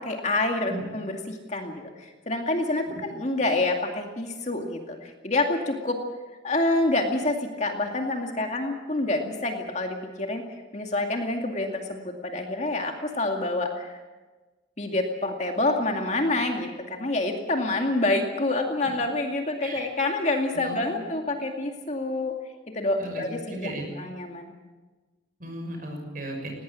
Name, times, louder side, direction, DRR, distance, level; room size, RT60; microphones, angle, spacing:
voice 1, 0.0-6.0 6.4-10.4 10.7-14.0 14.8-22.3 22.7-23.7 24.0-24.5, left 2 dB, 35° left, 3 dB, 2.3 m, -27 dB
voice 2, 20.5-21.1 23.0-23.2 23.5-23.9 25.4-26.5, right 1 dB, 45° right, 3 dB, 6.3 m, -36 dB
20.0 x 18.5 x 8.5 m, 1.2 s
head